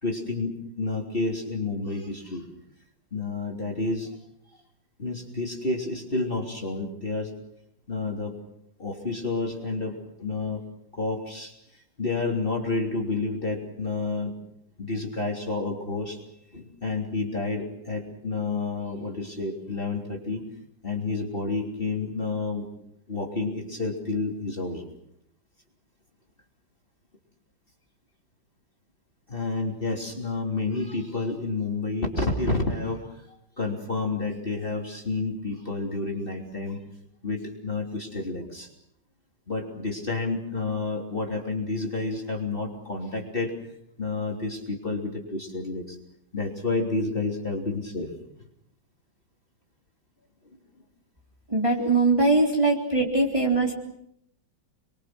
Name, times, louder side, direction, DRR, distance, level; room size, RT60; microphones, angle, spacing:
voice 1, 0.0-2.5 3.1-4.2 5.0-7.3 7.9-8.3 8.8-10.6 10.9-14.4 14.8-16.2 16.5-20.4 20.8-22.7 23.1-24.8 29.3-36.8 37.2-38.7 39.5-43.5 44.0-46.0 46.3-48.1 48.4-48.5 51.9-52.0, left 3 dB, 30° left, 0 dB, 3.4 m, -30 dB
voice 2, 51.5-53.7, right 2 dB, 15° right, -2 dB, 3.6 m, -21 dB
29.0 x 23.0 x 6.2 m, 0.77 s
omnidirectional pair, 2.0 m